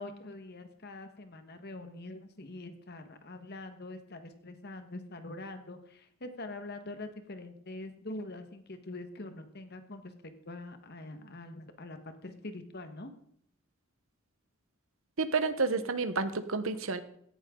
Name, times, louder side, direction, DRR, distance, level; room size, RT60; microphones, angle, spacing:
voice 1, 0.0-13.1, left 2 dB, 50° left, 8 dB, 1.4 m, -44 dB
voice 2, 15.2-17.0, right 4 dB, 70° right, 11 dB, 1.0 m, -30 dB
17.0 x 11.0 x 3.8 m, 0.68 s
head